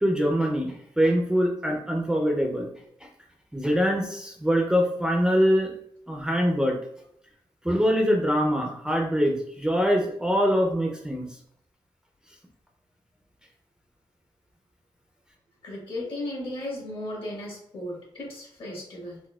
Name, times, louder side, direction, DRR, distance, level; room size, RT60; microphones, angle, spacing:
voice 1, 0.0-2.7 3.5-5.7 6.1-6.8 7.6-11.3, equal, 5° right, 1 dB, 0.4 m, -23 dB
voice 2, 15.6-19.2, left 1 dB, 60° left, -3 dB, 1.4 m, -35 dB
4.0 x 2.1 x 2.2 m, 0.70 s
wide cardioid pair, 115°, 10 cm